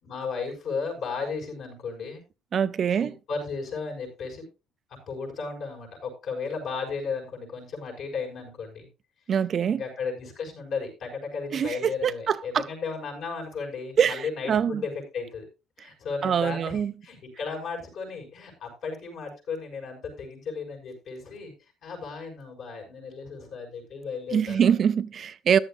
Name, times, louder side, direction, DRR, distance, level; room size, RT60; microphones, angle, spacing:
voice 1, 0.0-2.2 2.9-4.5 5.1-8.9 9.7-15.5 15.8-21.5 21.8-24.7, left 5 dB, 60° left, 6.1 m, -35 dB
voice 2, 2.5-3.1 9.3-9.8 11.5-12.6 14.0-14.2 14.5-14.8 16.2-16.9 24.3-25.6, right 8 dB, 40° right, 0.5 m, -24 dB
14.5 x 11.0 x 2.5 m
cardioid pair, 130°, 0 cm